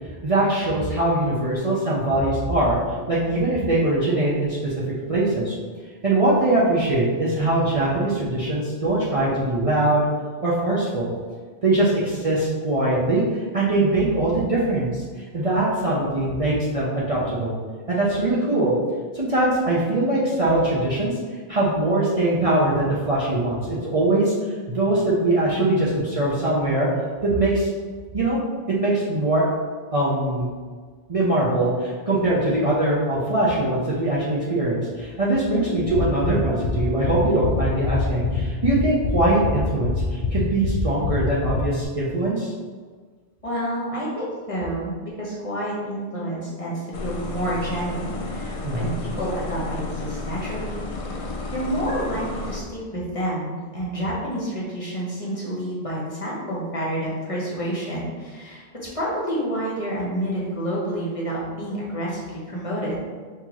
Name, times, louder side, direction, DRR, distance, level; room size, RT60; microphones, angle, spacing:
voice 1, 0.2-2.8 3.1-4.7 5.1-5.6 6.0-10.1 10.4-11.1 11.6-15.0 15.3-17.6 17.9-18.8 19.1-21.2 21.5-24.3 24.7-26.9 27.2-27.7 28.1-28.4 28.8-29.5 29.9-30.5 31.1-42.5 48.6-49.0, right 2 dB, 40° right, -7 dB, 0.7 m, -22 dB
sound 1, 35.5-40.3, equal, 90° right, 0.9 m, -38 dB
sound 2, 35.8-41.8, left 6 dB, 70° left, 0.9 m, -25 dB
voice 2, 43.4-46.7 47.0-50.8 51.1-51.2 51.5-58.6 58.9-63.0, right 1 dB, 35° left, -6 dB, 1.1 m, -29 dB
sound 3, 46.9-52.6, left 3 dB, 50° left, 0.4 m, -32 dB
5.7 x 2.8 x 3.0 m, 1.5 s
omnidirectional pair, 1.0 m